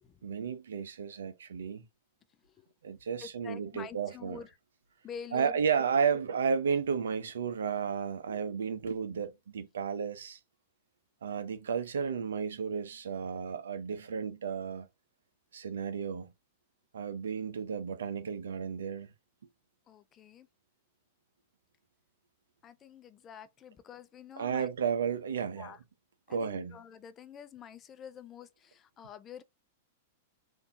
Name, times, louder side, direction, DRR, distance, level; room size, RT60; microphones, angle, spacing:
voice 1, 0.2-1.8 2.8-4.4 5.3-10.4 11.2-14.9 15.5-16.3 16.9-19.1 24.4-25.8 26.3-26.8, right 6 dB, 80° right, 0.6 m, -33 dB
voice 2, 3.2-4.5 5.0-5.8 19.9-20.5 22.6-24.7 25.6-25.8 26.3-29.4, left 7 dB, 30° left, 0.5 m, -48 dB
3.6 x 2.6 x 2.6 m
hypercardioid pair, 110°, 0 cm